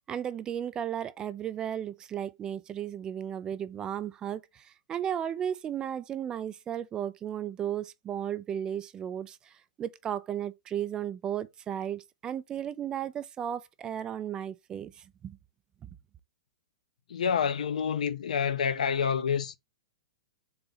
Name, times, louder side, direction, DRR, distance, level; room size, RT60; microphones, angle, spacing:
voice 1, 0.1-15.4, right 9 dB, 20° right, 0.3 m, -35 dB
voice 2, 17.1-19.5, left 7 dB, 80° left, 0.6 m, -28 dB
3.9 x 2.8 x 3.9 m
hypercardioid pair, 135°, 4 cm